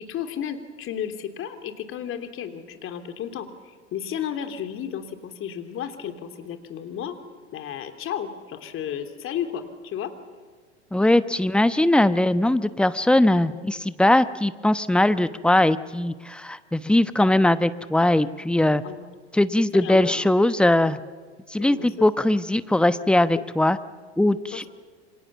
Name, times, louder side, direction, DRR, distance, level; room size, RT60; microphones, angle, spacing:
voice 1, 0.0-7.2 7.5-10.1 18.8-19.1 19.7-20.3 21.6-22.1 24.5-24.7, left 9 dB, 35° left, 7 dB, 3.2 m, -33 dB
voice 2, 10.9-18.8 19.3-21.0 21.5-23.8 24.2-24.7, left 1 dB, 5° left, 13 dB, 1.0 m, -20 dB
28.0 x 25.5 x 7.2 m, 1.5 s
figure-of-eight pair, 85°, 34 cm